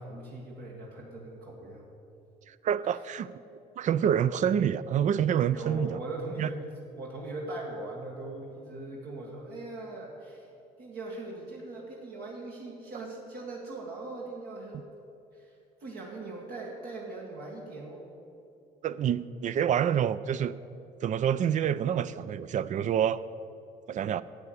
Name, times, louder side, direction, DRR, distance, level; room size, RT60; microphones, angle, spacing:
voice 1, 0.0-1.9 2.9-3.0 5.5-6.7 6.9-10.5 10.8-14.9 15.3-15.5 15.8-18.0, right 2 dB, 65° right, -2 dB, 1.8 m, -40 dB
voice 2, 2.5-3.3 3.8-6.0 6.4-6.5 18.8-20.5 21.0-23.2 23.9-24.2, right 9 dB, 45° right, 16 dB, 0.4 m, -27 dB
10.5 x 8.4 x 7.9 m, 2.7 s
cardioid pair, 110°, 17 cm